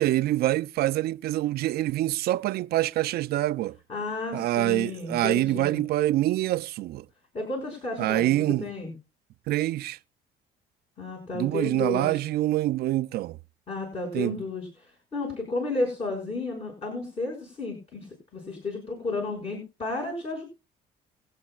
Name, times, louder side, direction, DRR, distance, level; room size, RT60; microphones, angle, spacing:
voice 1, 0.0-3.8 4.3-7.0 8.0-8.7 9.5-10.0 11.3-13.4 14.1-14.4, right 15 dB, 70° right, 0.5 m, -25 dB
voice 2, 3.9-5.8 7.3-8.9 11.0-12.2 13.7-18.1 18.3-20.4, left 3 dB, 35° left, 6.1 m, -32 dB
24.0 x 8.5 x 2.3 m
cardioid pair, 110°, 17 cm